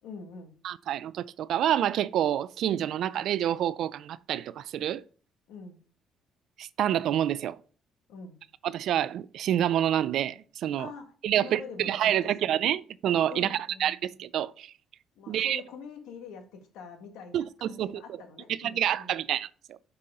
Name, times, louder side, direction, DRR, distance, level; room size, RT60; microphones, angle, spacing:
voice 1, 0.0-0.5 5.5-5.8 8.1-8.4 10.8-12.3 13.3-14.0 15.1-19.1, left 5 dB, 90° left, 1.6 m, -45 dB
voice 2, 0.6-5.0 6.6-7.6 8.6-10.9 11.2-14.7 15.3-15.6 17.3-18.0 18.5-19.5, right 11 dB, 65° right, 0.3 m, -28 dB
6.6 x 5.4 x 3.6 m
cardioid pair, 135°, 0 cm